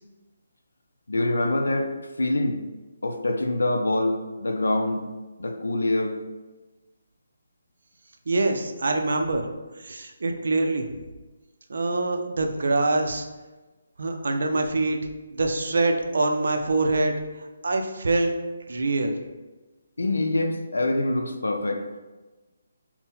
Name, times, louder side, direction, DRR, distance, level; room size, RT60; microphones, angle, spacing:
voice 1, 1.1-2.6 3.0-5.1 5.4-6.2 20.0-21.8, left 2 dB, 90° left, 4 dB, 0.4 m, -25 dB
voice 2, 8.3-9.5 9.8-10.9 11.7-13.3 14.0-15.0 15.3-17.1 17.6-18.3 18.7-19.2, right 2 dB, 70° right, 5 dB, 0.5 m, -24 dB
3.7 x 2.1 x 4.1 m, 1.2 s
hypercardioid pair, 160°, 0 cm